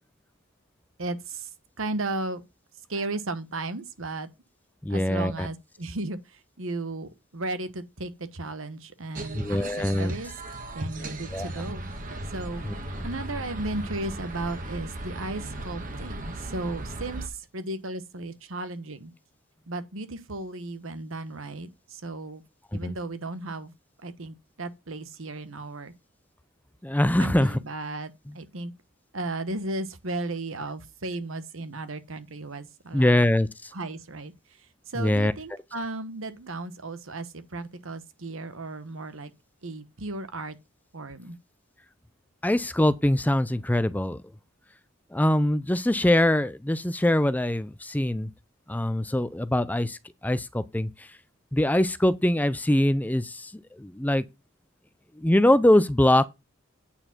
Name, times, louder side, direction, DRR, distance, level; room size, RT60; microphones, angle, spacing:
voice 1, 1.0-1.5 1.8-2.4 2.9-4.3 4.9-10.3 10.7-11.8 12.3-12.7 13.0-19.1 19.7-22.4 22.7-23.7 24.0-25.9 27.2-28.7 29.1-33.3 33.7-34.3 34.6-39.3 39.6-40.6 40.9-41.4, right 2 dB, 85° right, 1.2 m, -35 dB
voice 2, 4.8-5.5 9.3-10.1 11.3-11.5 12.7-12.8 22.8-22.9 26.8-27.6 32.9-33.7 35.0-35.3 42.4-44.2 45.1-48.3 48.7-50.0 50.2-51.1 51.5-54.2 55.2-56.2, left 1 dB, 10° left, 0.5 m, -23 dB
sound 1, 9.2-17.3, right 1 dB, 40° right, 1.6 m, -36 dB
8.8 x 4.7 x 6.0 m
head